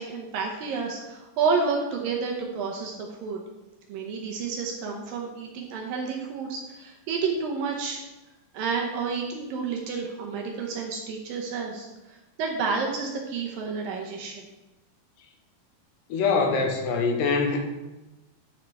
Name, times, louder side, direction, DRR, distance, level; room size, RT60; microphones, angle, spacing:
voice 1, 0.0-3.4 3.9-8.0 8.5-14.4, right 5 dB, 75° right, 0 dB, 2.3 m, -30 dB
voice 2, 16.1-17.6, left 4 dB, 85° left, 3 dB, 3.2 m, -23 dB
10.5 x 6.4 x 3.4 m, 1.0 s
omnidirectional pair, 4.7 m